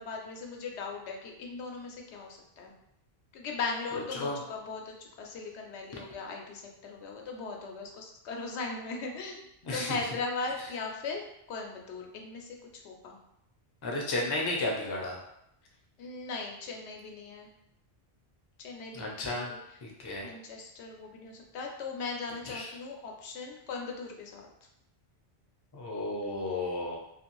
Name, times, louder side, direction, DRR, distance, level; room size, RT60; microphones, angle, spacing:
voice 1, 0.0-2.7 3.3-9.4 9.7-11.2 11.5-12.6 12.8-13.2 16.0-17.5 18.6-19.6 20.2-24.5, left 4 dB, 90° left, 1 dB, 0.9 m, -38 dB
voice 2, 3.9-4.4 9.6-10.0 13.8-15.1 18.9-19.5 19.8-20.3 22.5-22.7 25.7-27.0, left 2 dB, 35° left, -1 dB, 0.4 m, -33 dB
2.6 x 2.3 x 2.9 m, 0.80 s
omnidirectional pair, 1.1 m